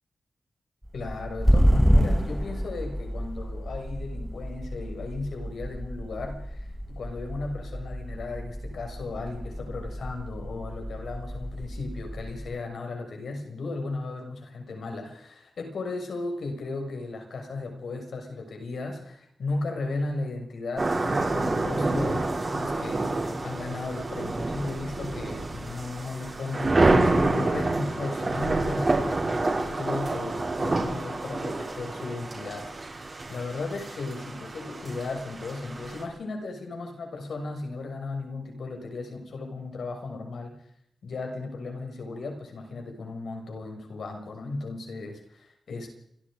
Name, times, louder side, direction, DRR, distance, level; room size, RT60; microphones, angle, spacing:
sound 1, 0.8-12.6, equal, ahead, 1.5 m, -28 dB
voice 1, 0.9-40.6 41.0-45.9, left 3 dB, 80° left, 3 dB, 6.6 m, -36 dB
sound 2, 20.8-36.0, right 2 dB, 30° right, 6.6 m, -28 dB
29.0 x 25.5 x 5.2 m, 0.72 s
wide cardioid pair, 160°, 0 cm